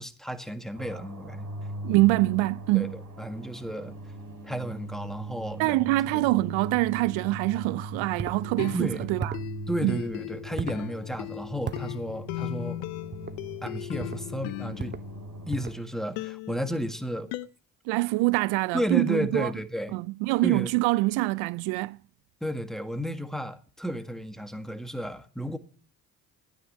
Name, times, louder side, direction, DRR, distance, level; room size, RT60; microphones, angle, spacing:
voice 1, 0.0-1.5 2.7-2.9 3.2-3.9 4.4-5.8 6.1-6.3 8.7-9.1 9.7-12.8 13.6-14.9 15.5-17.3 18.7-19.9 20.4-20.7 22.4-25.6, equal, ahead, 1.6 m, -33 dB
sound 1, 0.7-15.7, right 1 dB, 40° right, 7.5 m, -40 dB
voice 2, 1.8-3.0 5.6-9.4 9.8-9.9 17.9-19.5 19.9-22.0, right 21 dB, 70° right, 0.5 m, -25 dB
sound 2, 8.2-8.4 9.2-9.5 10.6-10.9 11.7-11.9 13.1-13.4 14.0-14.3 14.8-15.1 15.5-15.8, right 5 dB, 20° right, 0.9 m, -36 dB
sound 3, 8.4-15.7 16.2-17.5, left 17 dB, 85° left, 0.7 m, -38 dB
13.0 x 9.5 x 7.3 m
hypercardioid pair, 55°, 49 cm